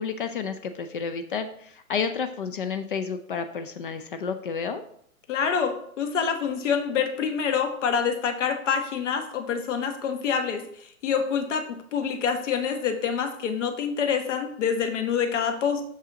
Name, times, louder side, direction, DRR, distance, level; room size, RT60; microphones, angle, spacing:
voice 1, 0.0-4.8, left 6 dB, 40° left, 10 dB, 0.4 m, -31 dB
voice 2, 5.3-15.8, left 7 dB, 55° left, 7 dB, 1.3 m, -26 dB
6.2 x 5.5 x 3.8 m, 0.68 s
hypercardioid pair, 130°, 43 cm